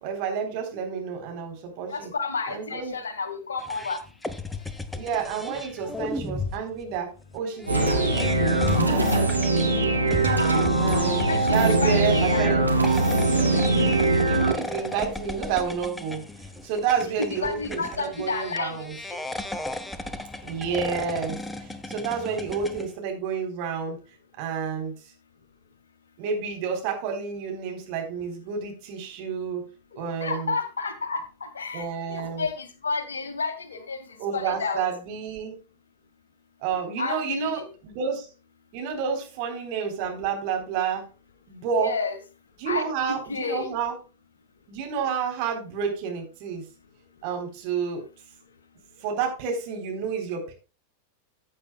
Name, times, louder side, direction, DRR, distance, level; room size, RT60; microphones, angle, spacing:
voice 1, 0.0-2.1 2.5-3.0 4.9-8.3 8.7-9.4 10.8-12.7 14.3-16.2 16.6-18.9 20.4-24.0 24.4-24.9 26.2-29.6 30.0-30.5 31.7-32.5 34.2-35.6 36.6-38.3 38.7-41.0 41.5-41.9 42.6-43.9 44.7-46.6 47.2-48.0 49.0-50.5, right 6 dB, 45° right, 3 dB, 3.7 m, -30 dB
voice 2, 1.9-4.0 11.2-12.4 17.0-19.2 29.9-34.8 37.0-37.7 41.8-42.2 42.7-42.8 43.3-43.7, left 4 dB, 70° left, 9 dB, 1.9 m, -31 dB
sound 1, 3.6-22.9, left 2 dB, 5° left, 1.1 m, -35 dB
sound 2, 7.7-14.5, right 2 dB, 80° right, 2.0 m, -22 dB
15.0 x 8.6 x 2.3 m, 0.31 s
figure-of-eight pair, 90°, 0 cm